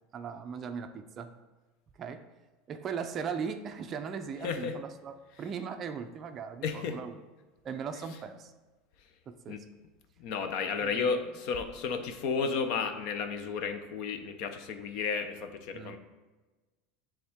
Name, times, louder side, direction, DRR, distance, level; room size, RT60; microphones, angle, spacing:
voice 1, 0.1-1.3 2.0-2.2 2.7-7.2 7.6-8.5 9.3-9.6 10.8-11.1 15.7-16.0, right 6 dB, 30° right, 8 dB, 0.4 m, -38 dB
voice 2, 4.4-4.8 6.6-7.0 9.5-9.6 10.2-16.0, left 5 dB, 55° left, 8 dB, 0.7 m, -33 dB
9.9 x 3.6 x 3.5 m, 1.2 s
supercardioid pair, 160°, 0 cm